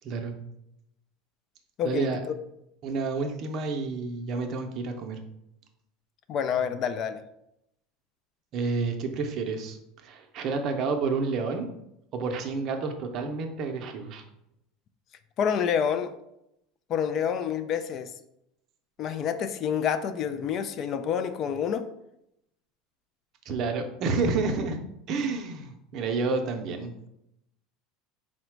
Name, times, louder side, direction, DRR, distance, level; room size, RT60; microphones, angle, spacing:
voice 1, 0.0-0.4 1.8-2.2 2.8-5.2 8.5-11.7 12.1-14.2 23.5-24.8 25.1-27.1, right 4 dB, 45° right, 4 dB, 0.6 m, -29 dB
voice 2, 1.8-2.4 6.3-7.2 15.4-16.1 16.9-18.1 19.0-21.9, left 8 dB, 45° left, 10 dB, 0.3 m, -28 dB
3.9 x 2.1 x 4.5 m, 0.81 s
supercardioid pair, 130°, 0 cm